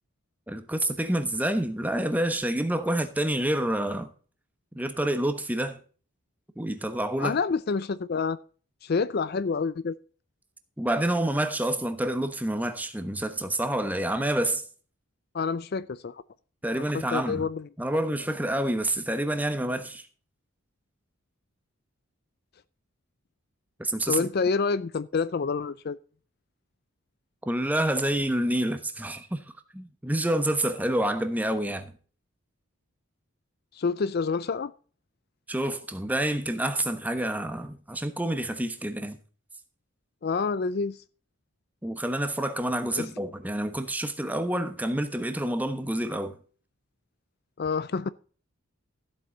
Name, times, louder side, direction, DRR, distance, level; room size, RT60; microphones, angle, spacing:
voice 1, 0.5-4.1 4.7-5.8 6.6-7.4 10.8-14.7 16.6-17.5 17.8-20.1 23.8-24.3 27.5-29.4 29.7-31.9 35.5-39.2 41.8-46.4, right 1 dB, 5° right, 1.1 m, -28 dB
voice 2, 7.2-8.4 8.8-10.0 15.3-16.2 16.7-17.7 24.1-26.0 33.7-34.7 40.2-41.0 42.9-43.1 47.6-48.1, left 5 dB, 45° left, 0.4 m, -28 dB
14.0 x 8.0 x 3.9 m
head